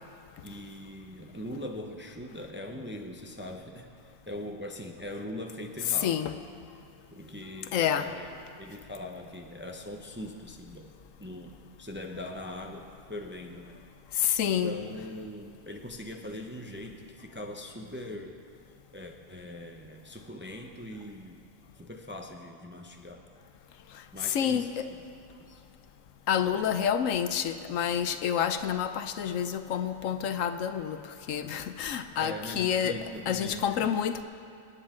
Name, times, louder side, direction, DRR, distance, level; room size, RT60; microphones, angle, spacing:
voice 1, 0.4-6.2 7.1-10.9 11.2-13.8 14.4-18.4 18.9-21.4 21.7-23.3 24.1-25.0 25.4-25.6 26.4-26.8 32.2-33.9, left 1 dB, 10° right, 2 dB, 0.6 m, -41 dB
voice 2, 6.0-6.4 7.7-8.1 14.2-14.8 24.2-24.8 26.3-31.0 31.3-34.2, left 8 dB, 75° left, 10 dB, 1.0 m, -28 dB
26.5 x 9.6 x 3.7 m, 2.4 s
omnidirectional pair, 1.4 m